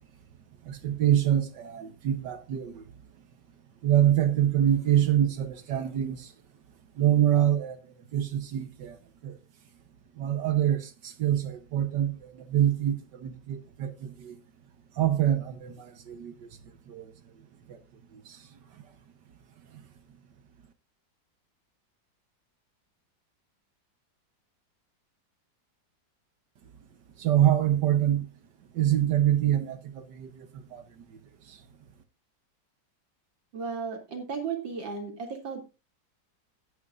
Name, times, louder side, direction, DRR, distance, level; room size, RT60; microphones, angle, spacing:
voice 1, 0.6-2.8 3.8-6.3 7.0-9.0 9.2-9.4 10.2-14.4 15.0-16.5 16.9-17.1 17.7-17.8 18.1-18.5 19.7-19.8 27.2-28.3 28.7-31.0 31.5-31.6, right 11 dB, 70° right, 1.6 m, -26 dB
voice 2, 33.5-35.6, right 5 dB, 85° right, 3.7 m, -34 dB
16.5 x 9.6 x 2.5 m
omnidirectional pair, 2.0 m